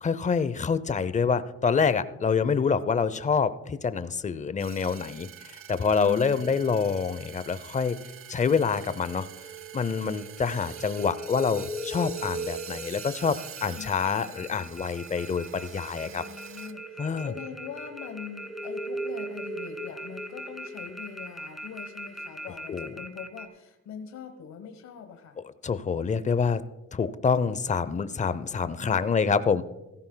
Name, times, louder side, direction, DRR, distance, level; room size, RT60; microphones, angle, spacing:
voice 1, 0.0-8.0 8.3-9.3 9.7-16.2 17.0-17.3 22.7-22.9 25.6-26.6 26.9-29.6, left 5 dB, 25° left, 15 dB, 0.6 m, -26 dB
sound 1, 4.6-16.7, right 9 dB, 45° right, 0.7 m, -45 dB
voice 2, 5.9-6.7 13.8-14.3 16.0-25.4 28.8-29.6, left 7 dB, 65° left, 7 dB, 1.2 m, -42 dB
sound 2, 9.0-23.5, right 1 dB, ahead, 1.2 m, -39 dB
16.5 x 14.5 x 2.2 m, 1.0 s
cardioid pair, 90°, 30 cm